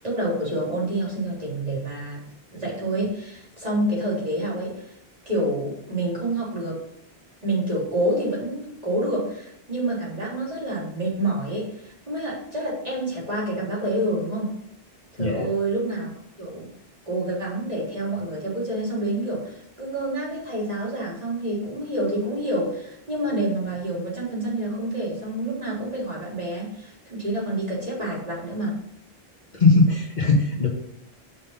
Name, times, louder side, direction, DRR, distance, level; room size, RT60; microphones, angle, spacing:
voice 1, 0.0-2.2 2.5-4.9 5.3-6.8 7.4-14.5 15.1-16.1 16.4-16.7 17.1-28.7, right 1 dB, 35° right, -6 dB, 3.6 m, -28 dB
voice 2, 15.2-15.5 29.5-30.7, left 3 dB, 45° left, -1 dB, 1.6 m, -19 dB
6.2 x 6.0 x 5.7 m, 0.76 s
omnidirectional pair, 1.1 m